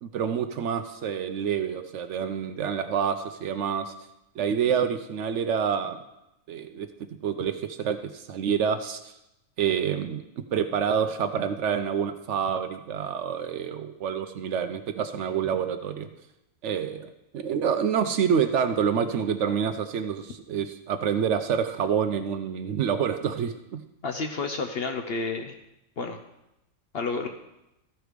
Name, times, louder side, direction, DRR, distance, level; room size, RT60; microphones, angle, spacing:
voice 1, 0.0-3.9 4.4-6.0 6.5-6.9 7.2-9.1 9.6-16.1 16.6-23.8, right 7 dB, 65° right, 9 dB, 0.8 m, -27 dB
voice 2, 24.0-25.5 26.0-26.2 26.9-27.3, left 4 dB, 55° left, 5 dB, 0.7 m, -30 dB
14.0 x 4.7 x 5.0 m, 0.89 s
omnidirectional pair, 1.5 m